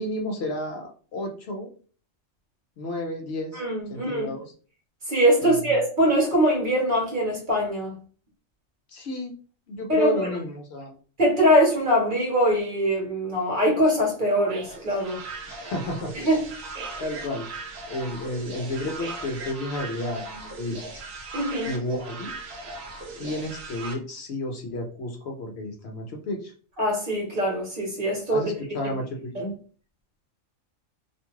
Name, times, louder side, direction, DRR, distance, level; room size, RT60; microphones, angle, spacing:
voice 1, 0.0-1.7 2.8-3.6 3.9-4.5 5.4-5.7 8.9-9.3 9.7-11.0 15.5-16.1 17.0-17.5 17.9-21.0 21.7-22.3 23.2-26.5 28.3-29.5, left 1 dB, 65° left, 0.8 m, -31 dB
voice 2, 3.5-4.3 5.1-7.9 9.9-10.3 11.2-15.2 16.1-16.4 21.3-21.7 26.8-28.6 28.8-28.9 29.3-29.5, equal, 40° right, 1.0 m, -22 dB
sound 1, 14.4-23.9, right 3 dB, 65° right, 0.8 m, -38 dB
2.5 x 2.3 x 2.9 m
omnidirectional pair, 1.3 m